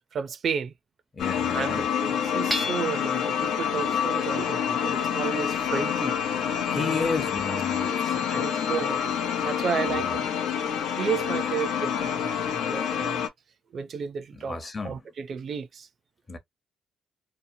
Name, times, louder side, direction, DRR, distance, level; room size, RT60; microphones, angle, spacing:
voice 1, 0.1-0.7 1.5-6.1 6.8-7.1 7.5-9.1 9.4-10.2 11.0-13.2 13.7-14.6 14.8-15.9, right 6 dB, 55° right, 0.4 m, -33 dB
voice 2, 1.1-1.9 6.6-8.5 9.9-10.2 14.4-14.9 16.3-16.4, left 4 dB, 30° left, 0.7 m, -33 dB
sound 1, 1.2-13.3, left 8 dB, 85° left, 0.6 m, -27 dB
Hammer / Chink clink, 2.5-3.3, left 1 dB, ahead, 0.5 m, -31 dB
2.8 x 2.0 x 2.6 m
cardioid pair, 90°, 0 cm